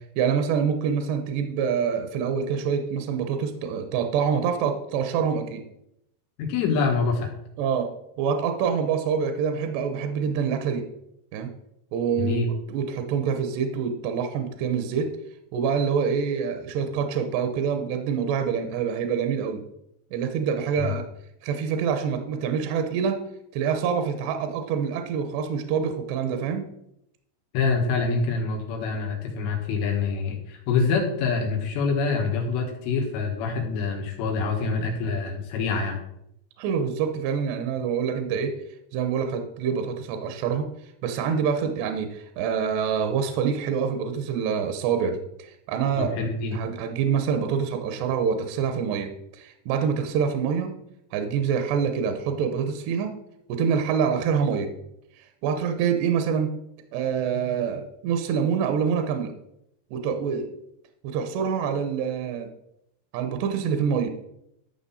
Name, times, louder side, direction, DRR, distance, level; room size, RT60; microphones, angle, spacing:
voice 1, 0.2-5.6 7.6-7.9 8.2-10.8 11.3-11.5 11.9-12.4 12.7-15.1 15.5-19.6 20.1-21.0 21.4-23.2 23.5-26.7 36.6-38.5 38.9-40.7 41.0-50.8 51.1-53.1 53.5-54.7 55.4-56.5 56.9-59.3 59.9-60.6 61.0-62.5 63.1-64.1, right 7 dB, 75° right, 6 dB, 2.6 m, -26 dB
voice 2, 6.4-7.3 12.1-12.5 20.8-20.9 27.5-36.0 46.0-46.6, left 4 dB, 85° left, 1 dB, 4.2 m, -26 dB
13.5 x 6.0 x 4.2 m, 0.79 s
omnidirectional pair, 5.6 m